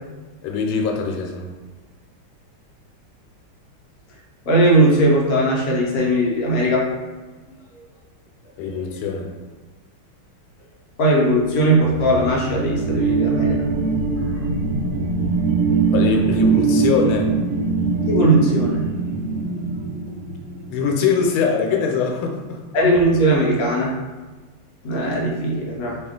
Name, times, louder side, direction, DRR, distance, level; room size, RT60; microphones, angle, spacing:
voice 1, 0.4-1.5 8.6-9.3 15.9-17.3 20.7-22.6, left 5 dB, 85° left, 1 dB, 1.4 m, -22 dB
voice 2, 4.5-6.8 11.0-13.7 18.1-18.9 22.7-23.9 24.8-26.0, right 1 dB, 65° left, -3 dB, 0.9 m, -18 dB
sound 1, 11.6-20.8, right 4 dB, 85° right, 1.5 m, -22 dB
3.5 x 2.4 x 3.6 m, 1.3 s
omnidirectional pair, 2.3 m